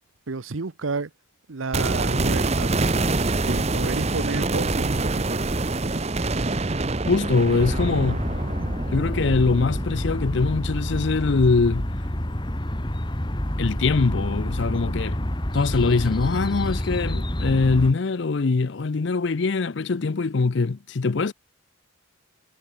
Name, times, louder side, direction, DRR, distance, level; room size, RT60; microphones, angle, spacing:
voice 1, 0.3-1.1 1.5-2.7 3.4-5.4, right 4 dB, 75° right, 0.8 m, -31 dB
sound 1, 1.7-11.7 12.0-12.1, right 2 dB, 30° right, 0.9 m, -26 dB
voice 2, 7.1-8.2 8.9-11.9 13.6-15.2 15.5-21.3, left 4 dB, 60° left, 0.5 m, -22 dB
sound 2, 7.6-17.9, left 1 dB, 20° left, 1.6 m, -28 dB
head